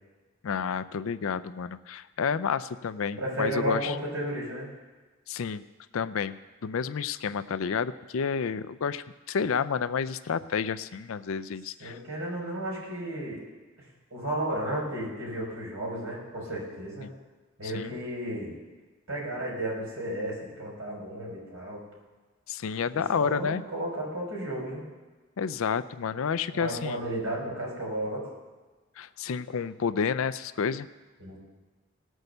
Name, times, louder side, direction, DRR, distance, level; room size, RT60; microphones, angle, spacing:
voice 1, 0.4-3.9 5.3-5.6 5.9-6.3 6.6-12.0 17.0-17.1 17.7-17.9 22.5-23.6 25.4-27.0 29.0-30.9, left 6 dB, 70° left, 14 dB, 0.4 m, -30 dB
voice 2, 3.1-4.7 11.8-13.4 14.1-17.1 17.6-18.5 19.1-21.8 22.9-24.8 26.5-28.3 31.2-31.4, right 1 dB, 75° right, -3 dB, 4.8 m, -33 dB
17.5 x 6.3 x 6.7 m, 1.3 s
head